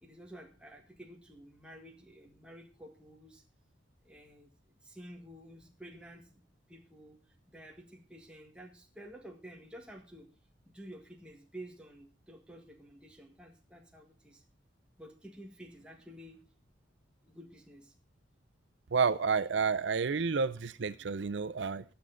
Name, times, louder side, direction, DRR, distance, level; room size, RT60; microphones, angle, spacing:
voice 1, 0.0-3.4 4.0-4.5 4.8-6.4 6.7-10.3 10.6-14.4 15.0-16.4 17.2-17.9, right 1 dB, 5° right, 1 dB, 1.7 m, -51 dB
voice 2, 18.9-21.8, right 5 dB, 65° right, 12 dB, 0.5 m, -30 dB
21.0 x 7.0 x 3.8 m, 0.34 s
head